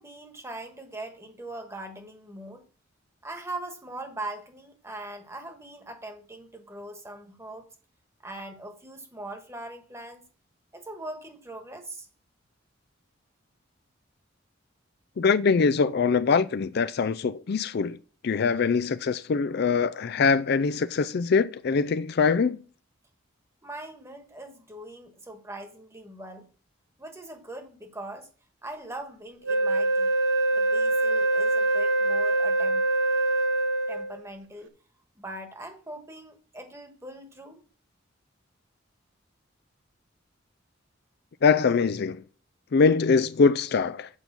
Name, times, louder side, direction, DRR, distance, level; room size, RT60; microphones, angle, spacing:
voice 1, 0.0-2.6 3.2-7.7 8.2-10.2 10.7-12.1 23.6-26.5 27.0-28.3 28.6-30.1 30.5-32.9 33.9-34.7 35.2-37.6, right 1 dB, 15° right, 1.4 m, -41 dB
voice 2, 15.2-18.0 18.2-22.6 41.4-42.2 42.7-44.1, left 5 dB, 55° left, 0.4 m, -23 dB
Wind instrument woodwind instrument, 29.4-34.2, right 2 dB, 65° right, 0.8 m, -24 dB
8.2 x 5.4 x 7.3 m
head